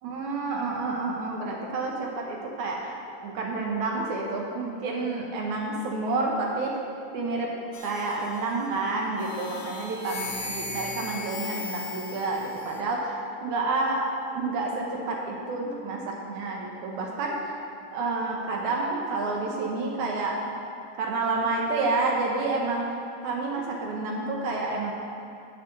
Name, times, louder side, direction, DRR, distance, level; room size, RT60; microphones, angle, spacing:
voice 1, 0.0-3.0 3.2-6.7 7.1-7.5 7.8-13.2 13.4-14.1 14.3-17.5 17.9-20.4 21.0-22.9 23.2-24.9, right 3 dB, 70° right, -1 dB, 1.9 m, -29 dB
sound 1, 7.7-8.7 9.2-12.8, left 3 dB, 80° left, 1.4 m, -37 dB
8.5 x 6.8 x 6.6 m, 2.5 s
omnidirectional pair, 4.5 m